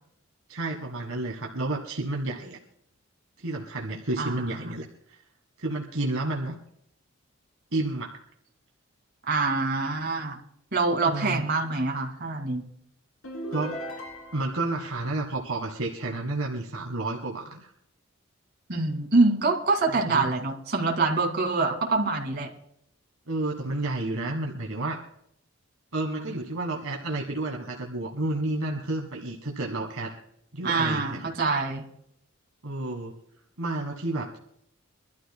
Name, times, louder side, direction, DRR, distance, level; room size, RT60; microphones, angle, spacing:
voice 1, 0.5-2.6 3.4-5.2 5.6-6.6 7.7-8.2 11.0-11.5 13.5-13.7 14.3-17.7 19.9-20.3 23.3-25.0 25.9-30.1 30.5-31.3 32.6-33.1 33.6-34.4, right 2 dB, 75° right, 1 dB, 1.5 m, -31 dB
voice 2, 9.3-10.4 10.7-12.6 18.7-22.5 30.6-31.8, right 3 dB, 50° right, 2 dB, 2.3 m, -25 dB
sound 1, 13.2-14.7, right 1 dB, 80° left, 2.9 m, -37 dB
24.5 x 13.0 x 2.2 m, 0.72 s
head